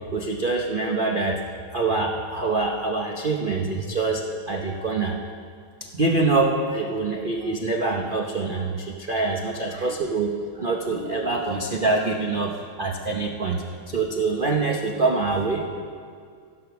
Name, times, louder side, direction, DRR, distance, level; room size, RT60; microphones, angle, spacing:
voice 1, 0.1-1.4 1.7-5.2 5.9-15.9, right 3 dB, 75° right, 1 dB, 0.4 m, -25 dB
13.0 x 11.5 x 5.9 m, 2.1 s
omnidirectional pair, 2.3 m